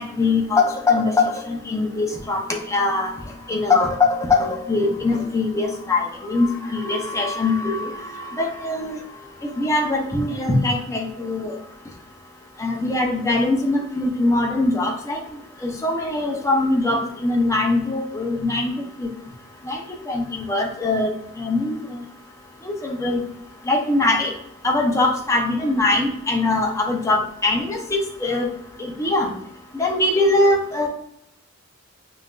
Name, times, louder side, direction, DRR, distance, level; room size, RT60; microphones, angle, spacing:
voice 1, 0.0-2.4 2.7-3.1 3.5-9.0 9.6-11.6 12.6-15.2 15.6-18.7 19.0-19.1 19.6-19.8 20.1-21.1 21.4-22.0 22.6-23.2 23.7-24.3 24.6-28.5 28.8-29.3 29.7-30.9, left 2 dB, 15° left, 0 dB, 0.6 m, -22 dB
5.6 x 2.5 x 2.3 m, 0.73 s
head